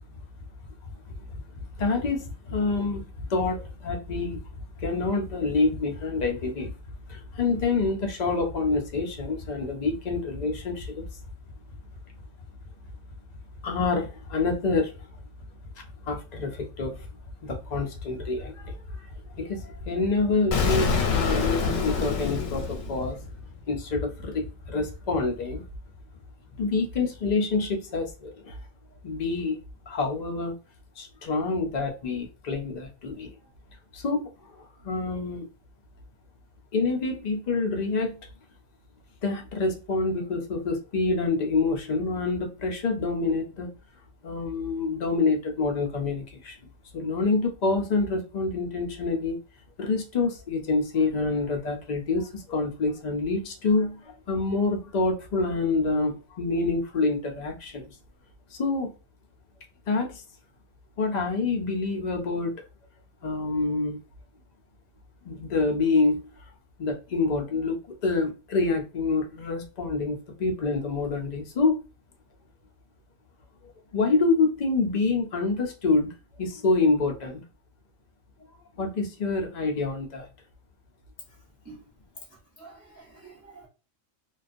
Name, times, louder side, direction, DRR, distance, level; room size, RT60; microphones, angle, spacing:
voice 1, 1.1-6.7 7.1-11.0 13.6-15.1 15.8-17.1 17.4-23.2 23.7-25.6 26.6-28.6 29.0-29.6 29.9-30.5 31.0-33.3 33.9-35.5 36.7-38.2 39.2-43.7 44.2-46.6 46.9-49.4 49.8-57.9 58.5-58.9 59.9-60.2 61.0-62.5 63.2-64.0 65.2-66.2 66.8-71.8 73.9-76.1 76.4-77.4 78.8-80.3, left 3 dB, 65° left, 0.4 m, -27 dB
Explosion, 20.5-23.4, left 5 dB, 85° left, 1.0 m, -26 dB
voice 2, 82.6-83.7, right 4 dB, 25° right, 0.3 m, -48 dB
2.3 x 2.3 x 2.4 m
omnidirectional pair, 1.3 m